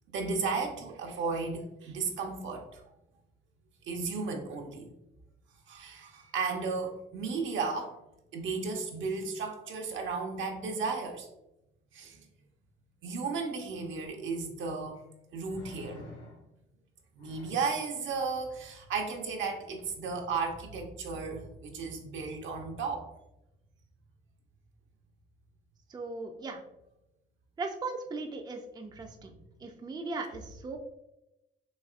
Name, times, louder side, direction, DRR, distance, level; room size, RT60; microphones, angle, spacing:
voice 1, 0.1-2.8 3.9-4.9 5.7-7.9 8.3-11.3 11.9-12.2 13.0-15.0 15.3-16.0 17.1-23.1, right 4 dB, 75° right, 2 dB, 0.8 m, -34 dB
sound 1, 14.1-14.2 15.4-16.6 17.2-17.9 19.8-19.9, left 1 dB, 65° left, 0.9 m, -49 dB
voice 2, 25.9-26.6 27.6-29.3 29.6-30.8, right 3 dB, 20° right, 4 dB, 0.4 m, -38 dB
4.1 x 2.9 x 2.4 m, 0.90 s
cardioid pair, 90°, 20 cm